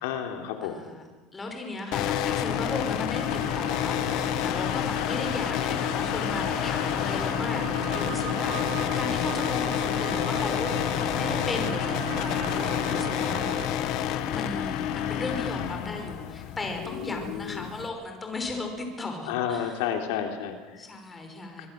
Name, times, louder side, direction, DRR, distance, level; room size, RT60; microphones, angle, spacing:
voice 1, 0.0-0.8 16.9-17.7 19.3-20.8 21.6-21.7, left 9 dB, 85° left, 4 dB, 3.5 m, -31 dB
voice 2, 0.6-1.0 1.3-13.6 14.3-19.8 20.8-21.7, left 2 dB, 15° left, 4 dB, 5.3 m, -36 dB
sound 1, 1.9-17.9, left 10 dB, 60° left, 1.9 m, -29 dB
sound 2, 3.1-13.7, right 12 dB, 70° right, 2.1 m, -39 dB
25.5 x 21.5 x 7.7 m, 1.3 s
cardioid pair, 140°, 0 cm